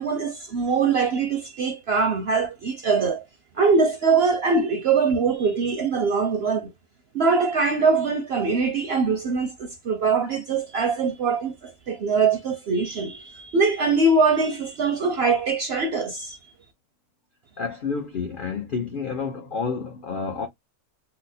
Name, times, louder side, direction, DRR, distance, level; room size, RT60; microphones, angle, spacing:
voice 1, 0.0-3.2 3.6-6.7 7.1-16.4, right 4 dB, 60° right, 0.6 m, -22 dB
voice 2, 17.6-20.5, left 5 dB, 65° left, 0.5 m, -29 dB
4.0 x 2.0 x 2.6 m
omnidirectional pair, 1.6 m